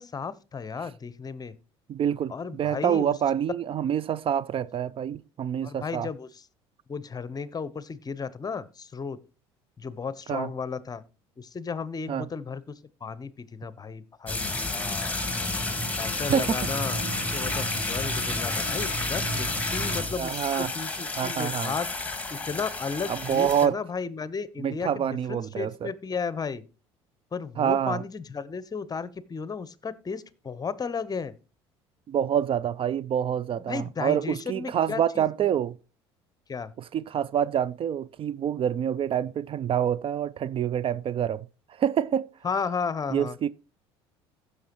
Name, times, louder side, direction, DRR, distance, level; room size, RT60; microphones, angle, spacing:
voice 1, 0.0-1.5 2.3-3.1 5.6-6.3 6.9-9.2 9.8-11.0 11.4-12.6 13.0-15.2 16.0-21.9 22.5-26.6 27.3-31.3 33.7-35.3 36.5-36.7 42.4-43.4, left 5 dB, 30° left, 0.8 m, -34 dB
voice 2, 1.9-6.1 10.3-10.5 12.1-12.3 16.3-16.6 20.2-20.7 21.2-21.7 23.1-23.8 24.6-25.9 27.6-28.0 32.1-35.8 36.8-42.3 43.1-43.5, right 9 dB, 40° right, 0.4 m, -27 dB
sound 1, 14.3-23.7, left 2 dB, 10° left, 1.9 m, -30 dB
15.5 x 6.5 x 3.0 m
hypercardioid pair, 65°, 14 cm